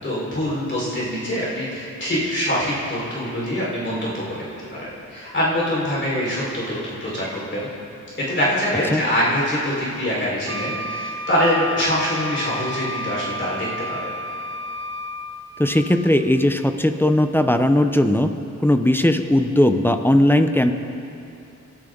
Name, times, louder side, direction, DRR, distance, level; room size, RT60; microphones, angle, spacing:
voice 1, 0.0-7.7 8.2-14.1, equal, 40° left, -7 dB, 5.0 m, -24 dB
Wind instrument woodwind instrument, 10.5-15.6, equal, 40° right, 1.1 m, -31 dB
voice 2, 15.6-18.3 18.6-20.7, left 1 dB, 5° left, 7 dB, 0.7 m, -18 dB
29.0 x 12.5 x 4.0 m, 2.7 s
wide cardioid pair, 120°, 30 cm